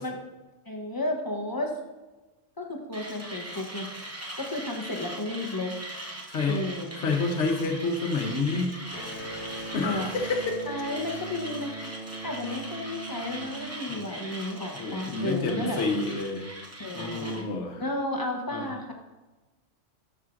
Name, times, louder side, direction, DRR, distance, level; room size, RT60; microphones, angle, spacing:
voice 1, 0.7-1.8 2.6-3.9 4.4-5.7 6.4-7.0 9.8-10.1 10.6-11.7 12.2-15.8 16.8-17.4 17.8-18.9, left 2 dB, 20° left, 1 dB, 0.7 m, -33 dB
Mechanisms, 2.9-17.5, right 1 dB, 15° right, 0.7 m, -41 dB
voice 2, 6.3-6.6 7.0-8.7 9.7-10.6 13.9-14.0 14.7-16.5 16.9-17.8 18.5-18.7, left 3 dB, 70° left, 3 dB, 1.2 m, -28 dB
Electric guitar, 8.9-14.4, right 2 dB, 50° left, 1.5 m, -40 dB
11.5 x 4.9 x 2.5 m, 1.1 s
omnidirectional pair, 1.3 m